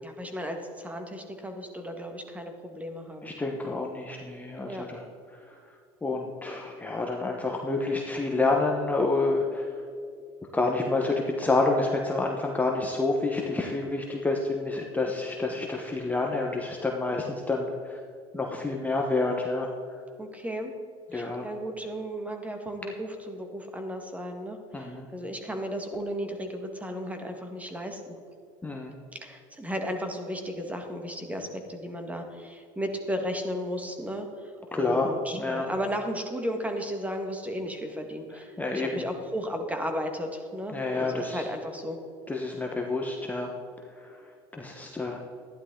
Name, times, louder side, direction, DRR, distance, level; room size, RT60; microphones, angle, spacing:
voice 1, 0.0-3.3 4.6-4.9 20.2-20.7 21.1-28.1 29.1-42.0, equal, 10° right, 4 dB, 1.7 m, -35 dB
voice 2, 3.2-5.0 5.5-5.6 6.0-9.7 10.5-18.0 18.3-19.7 21.1-21.5 24.7-25.1 28.6-29.0 34.7-35.7 38.3-38.9 40.7-41.4 42.3-43.5 44.0-44.1 44.5-45.2, left 3 dB, 10° left, 0 dB, 1.1 m, -28 dB
12.5 x 11.0 x 3.9 m, 2.3 s
supercardioid pair, 105°, 14 cm